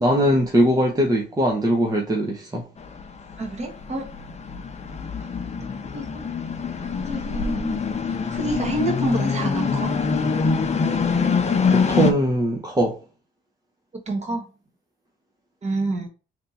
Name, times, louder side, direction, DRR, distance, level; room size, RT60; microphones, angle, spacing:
voice 1, 0.0-2.6 11.7-12.9, right 1 dB, 20° right, 0.8 m, -21 dB
sound 1, 2.8-12.1, left 5 dB, 35° left, 0.7 m, -24 dB
voice 2, 3.4-4.1 5.2-5.3 5.5-6.2 7.0-7.9 8.3-9.9 13.9-14.4 15.6-16.1, right 2 dB, 35° right, 1.4 m, -28 dB
3.4 x 2.8 x 4.1 m
cardioid pair, 90°, 20 cm